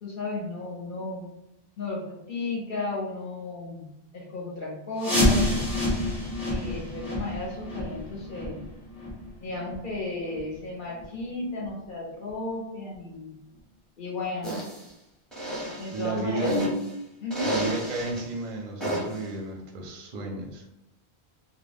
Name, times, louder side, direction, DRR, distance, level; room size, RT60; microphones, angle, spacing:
voice 1, 0.0-1.3 1.8-3.8 4.1-5.5 6.4-8.6 9.4-13.3 14.0-14.6 15.8-16.6 17.2-17.5, left 2 dB, 55° left, -3 dB, 0.7 m, -34 dB
sound 1, 5.0-10.6 10.9-11.0 11.6-11.7 12.3-12.4 12.9-13.0, left 1 dB, 20° left, 0.9 m, -28 dB
sound 2, 14.4-14.8 15.3-16.9 17.3-18.2 18.8-19.2, equal, ahead, 0.6 m, -30 dB
voice 2, 15.9-16.6 17.4-20.6, right 3 dB, 50° right, 0 dB, 0.6 m, -32 dB
2.2 x 2.2 x 3.2 m, 0.86 s
omnidirectional pair, 1.1 m